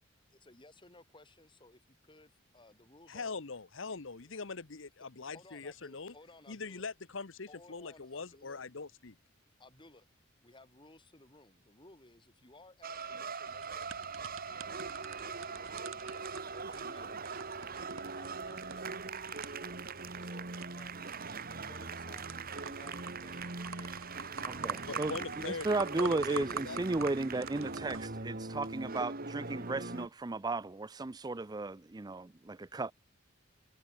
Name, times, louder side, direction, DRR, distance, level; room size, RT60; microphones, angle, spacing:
voice 1, 0.3-3.4 4.2-4.3 5.3-6.8 7.5-8.6 9.6-10.1 10.4-14.1 14.4-17.2 17.6-23.9 24.2-25.7, left 2 dB, 25° left, 4.3 m, -59 dB
voice 2, 3.1-6.1 6.5-9.2 24.7-26.8, left 4 dB, 65° left, 1.1 m, -42 dB
sound 1, 12.8-30.1, right 4 dB, 45° right, 2.5 m, -41 dB
sound 2, 13.5-28.1, right 5 dB, 90° right, 4.1 m, -46 dB
voice 3, 24.6-25.1 25.4-32.9, right 2 dB, 20° right, 0.5 m, -35 dB
head